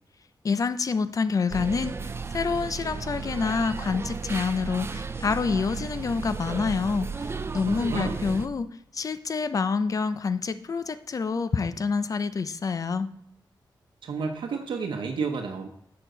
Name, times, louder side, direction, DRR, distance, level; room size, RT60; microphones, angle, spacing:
voice 1, 0.4-13.1, left 5 dB, 45° left, 12 dB, 0.5 m, -27 dB
sound 1, 1.5-8.5, right 5 dB, 30° right, 0.5 m, -34 dB
voice 2, 7.7-8.3 14.0-15.7, right 5 dB, 80° right, 2 dB, 0.9 m, -31 dB
7.6 x 6.5 x 3.9 m, 0.76 s
cardioid pair, 90°, 8 cm